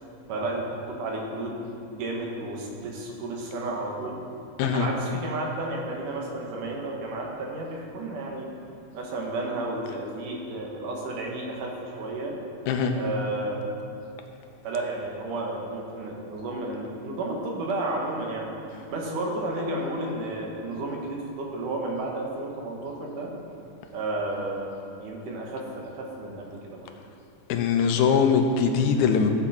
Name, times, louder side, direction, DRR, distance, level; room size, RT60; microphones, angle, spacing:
voice 1, 0.3-1.7 1.9-4.2 4.7-8.5 8.9-12.4 12.9-13.6 14.6-18.5 18.9-23.3 23.9-24.7 25.0-26.9, right 2 dB, 90° right, -1 dB, 3.0 m, -32 dB
voice 2, 27.5-29.3, left 6 dB, 80° left, 5 dB, 2.1 m, -22 dB
14.5 x 7.7 x 4.3 m, 2.7 s
omnidirectional pair, 3.5 m